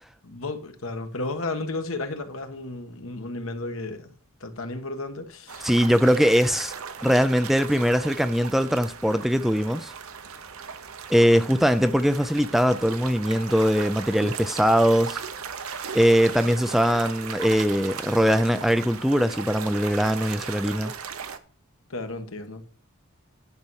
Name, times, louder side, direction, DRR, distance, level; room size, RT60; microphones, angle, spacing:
voice 1, 0.2-4.1 4.4-5.7 21.9-22.6, left 2 dB, 70° left, 1.5 m, -33 dB
sound 1, 5.5-21.4, right 6 dB, 80° right, 1.0 m, -37 dB
voice 2, 5.6-6.7 7.0-9.9 11.1-15.2 15.9-20.9, equal, ahead, 0.4 m, -21 dB
10.5 x 5.6 x 6.3 m
head